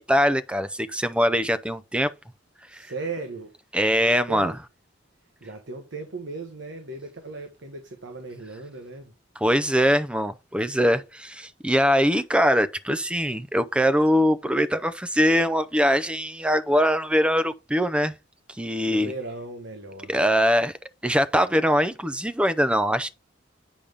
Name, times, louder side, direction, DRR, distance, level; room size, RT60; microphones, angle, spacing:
voice 1, 0.0-2.1 2.7-2.9 3.7-4.5 9.4-18.1 18.6-19.1 20.1-20.7 21.0-23.1, equal, 5° right, 0.5 m, -22 dB
voice 2, 2.7-3.5 3.9-4.6 5.4-9.1 18.9-20.2, right 3 dB, 65° right, 1.1 m, -37 dB
8.6 x 5.2 x 3.5 m
head